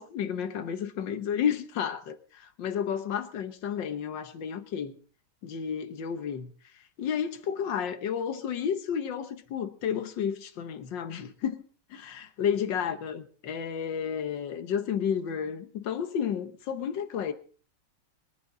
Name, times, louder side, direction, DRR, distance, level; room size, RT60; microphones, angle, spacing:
voice 1, 0.0-5.0 5.4-11.6 11.9-17.3, left 8 dB, 85° left, 1.8 m, -32 dB
24.0 x 11.0 x 3.8 m
omnidirectional pair, 1.9 m